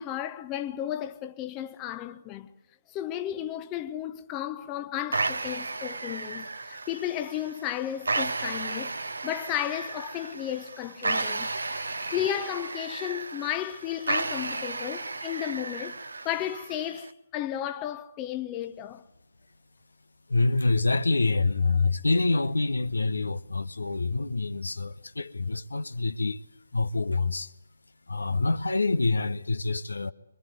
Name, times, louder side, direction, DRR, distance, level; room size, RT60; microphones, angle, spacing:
voice 1, 0.0-2.5 2.9-8.9 9.2-16.0 16.2-19.0, left 11 dB, 20° left, 0.9 m, -33 dB
sound 1, 5.1-17.1, right 3 dB, 70° right, 1.3 m, -33 dB
voice 2, 20.3-26.4 26.7-27.5 28.1-30.1, left 3 dB, 70° left, 1.0 m, -26 dB
25.0 x 22.5 x 8.0 m
figure-of-eight pair, 140°, 0 cm